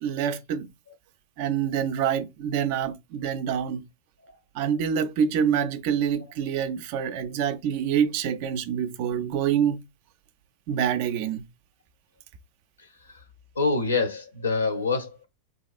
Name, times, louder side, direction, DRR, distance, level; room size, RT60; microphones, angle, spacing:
voice 1, 0.0-0.7 1.4-3.8 4.6-9.8 10.7-11.5, right 8 dB, 45° right, 0.3 m, -26 dB
voice 2, 13.6-15.3, left 4 dB, 75° left, 0.7 m, -25 dB
2.9 x 2.2 x 2.4 m
figure-of-eight pair, 90°, 0 cm